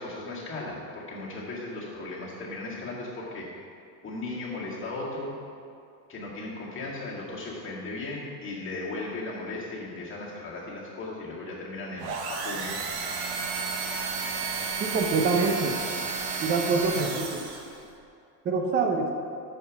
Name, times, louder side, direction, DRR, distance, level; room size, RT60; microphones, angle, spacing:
voice 1, 0.0-3.5 4.0-5.3 6.1-12.8 13.1-13.2 16.9-17.2, left 2 dB, 25° left, -5 dB, 2.1 m, -36 dB
sound 1, 12.0-17.8, right 4 dB, 60° right, 1.3 m, -32 dB
voice 2, 14.9-15.7 16.4-17.4 18.4-19.1, right 4 dB, 20° right, 3 dB, 0.7 m, -25 dB
6.7 x 5.5 x 7.0 m, 2.5 s
supercardioid pair, 125°, 50 cm